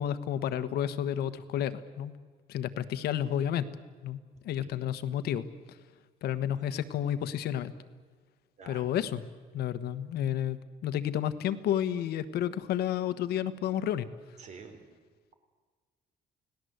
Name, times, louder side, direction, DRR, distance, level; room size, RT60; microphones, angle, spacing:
voice 1, 0.0-2.1 2.5-3.7 4.0-4.2 4.4-5.8 6.2-7.7 8.7-9.2 9.5-14.1, left 10 dB, 75° left, 12 dB, 1.3 m, -31 dB
voice 2, 8.6-8.9 14.4-14.8, right 5 dB, 45° right, 6 dB, 3.8 m, -48 dB
29.5 x 18.5 x 8.1 m, 1.5 s
cardioid pair, 170°, 17 cm